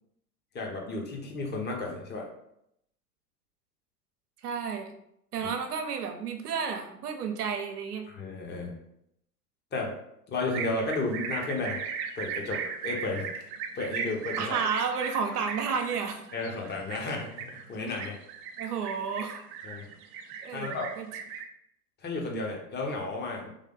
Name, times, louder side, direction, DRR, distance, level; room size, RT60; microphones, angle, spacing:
voice 1, 0.5-2.3 5.4-5.5 8.1-8.7 9.7-9.9 10.3-11.8 12.2-13.3 13.7-14.5 16.3-18.2 19.6-19.9 20.5-20.9 22.0-23.5, left 3 dB, 20° left, 0 dB, 1.1 m, -33 dB
voice 2, 4.4-4.9 5.3-8.0 14.4-16.2 18.6-19.4 20.4-21.1, right 6 dB, 75° right, 5 dB, 0.9 m, -31 dB
sound 1, 10.5-21.4, right 6 dB, 40° right, 0.5 m, -37 dB
3.5 x 3.2 x 3.8 m, 0.78 s
figure-of-eight pair, 90°, 46 cm